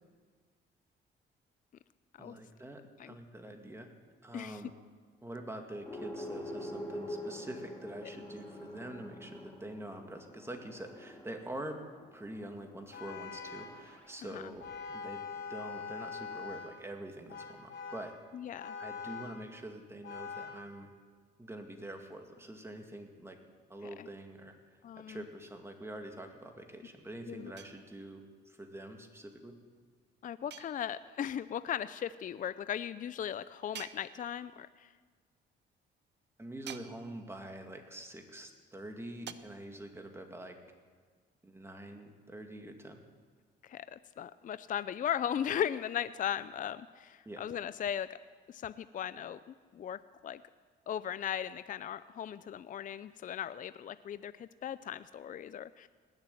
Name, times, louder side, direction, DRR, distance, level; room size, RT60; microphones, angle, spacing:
voice 1, 2.2-3.9 4.2-4.7 5.2-11.8 12.1-18.2 18.8-20.9 21.4-23.4 23.7-24.5 25.0-29.5 36.4-40.6 41.4-43.0 47.3-47.5, right 1 dB, 10° right, 4 dB, 2.1 m, -45 dB
sound 1, 5.8-14.7, left 1 dB, 5° left, 3.5 m, -46 dB
Vehicle horn car horn honking, 12.9-13.8 14.6-16.8 17.3-18.1 18.6-19.4 20.0-20.6, left 5 dB, 75° left, 4.1 m, -43 dB
voice 2, 18.3-18.8 24.0-24.1 24.8-25.2 27.3-27.5 30.2-34.9 43.6-48.2 48.5-50.4 50.9-55.9, left 9 dB, 40° left, 15 dB, 0.4 m, -37 dB
sound 2, 27.6-28.3 30.5-31.3 33.7-34.7 36.7-37.5 39.3-39.4, right 10 dB, 60° right, 0.7 m, -49 dB
19.5 x 7.4 x 9.2 m, 1.5 s
cardioid pair, 90°, 20 cm